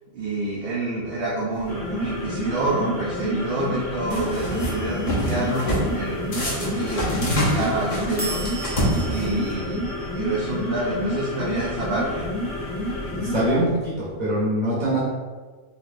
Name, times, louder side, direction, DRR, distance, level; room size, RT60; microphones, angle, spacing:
voice 1, 0.1-8.4 9.0-12.3, right 2 dB, 55° right, -6 dB, 0.8 m, -28 dB
sound 1, 1.5-13.5, left 1 dB, 90° left, 1.3 m, -30 dB
sound 2, 4.1-4.7 5.1-5.9 6.3-9.5, equal, 40° left, 0.9 m, -26 dB
sound 3, 4.5-6.5 8.2-14.2, right 2 dB, 15° right, 0.3 m, -39 dB
voice 2, 13.1-15.0, right 1 dB, 35° right, -7 dB, 1.3 m, -23 dB
4.2 x 2.9 x 2.5 m, 1.4 s
omnidirectional pair, 1.3 m